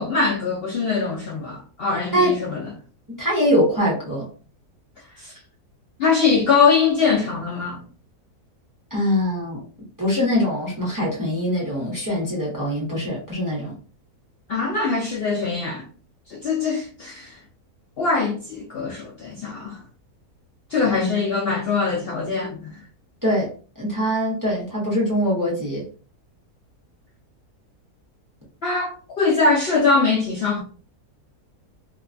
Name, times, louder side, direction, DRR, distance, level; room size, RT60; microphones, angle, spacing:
voice 1, 0.0-2.6 5.2-5.3 6.0-7.8 14.5-15.9 16.3-17.4 18.0-19.8 20.7-22.8 28.6-30.6, left 4 dB, 85° left, 0.5 m, -22 dB
voice 2, 3.2-4.2 8.9-9.6 10.0-13.7 21.0-21.2 23.2-23.5 23.8-25.8, equal, 20° right, 0.6 m, -23 dB
2.8 x 2.2 x 2.5 m
omnidirectional pair, 1.7 m